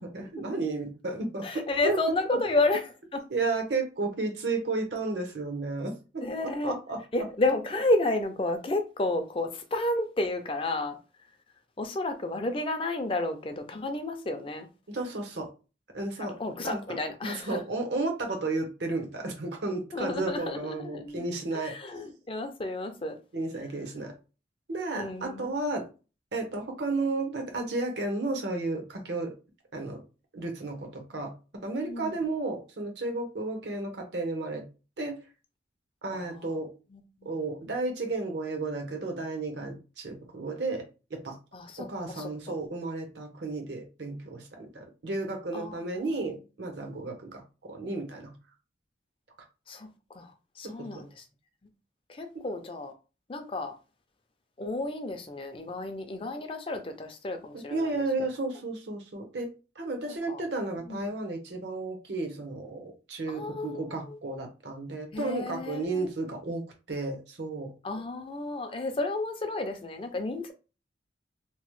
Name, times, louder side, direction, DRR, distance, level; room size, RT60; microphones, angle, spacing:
voice 1, 0.1-1.5 1.8-2.0 2.3-2.4 3.3-5.9 6.6-7.0 14.9-15.5 15.9-16.4 16.6-16.8 17.2-21.8 23.3-24.1 24.7-25.9 26.3-29.3 29.7-30.0 30.3-31.3 31.6-34.7 35.0-35.1 36.0-36.7 37.2-40.8 41.1-41.4 41.8-48.3 50.6-51.0 52.3-52.4 57.5-59.5 59.8-67.7, right 2 dB, 70° right, 0.9 m, -33 dB
voice 2, 1.4-3.2 6.2-6.8 7.1-11.0 11.8-14.7 16.2-17.6 19.9-21.3 21.5-23.2 25.0-25.5 31.8-32.2 36.1-36.6 36.9-37.3 41.5-42.6 45.5-46.4 49.7-49.9 50.1-51.2 52.1-52.9 53.3-53.7 54.6-58.0 60.3-60.4 60.9-61.0 63.3-64.2 65.1-66.1 67.8-70.5, left 2 dB, 30° left, 0.4 m, -32 dB
2.9 x 2.0 x 3.1 m
head